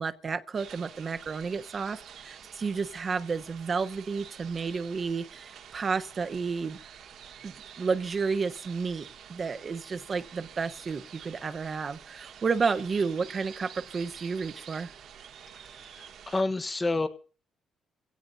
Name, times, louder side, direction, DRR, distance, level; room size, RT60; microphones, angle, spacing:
voice 1, 0.0-6.8 7.4-14.9, right 5 dB, 40° right, 1.0 m, -31 dB
sound 1, 0.5-16.4, right 8 dB, 70° right, 1.5 m, -48 dB
voice 2, 15.9-17.1, left 2 dB, 25° left, 1.1 m, -29 dB
25.0 x 17.0 x 2.7 m
cardioid pair, 90°, 0 cm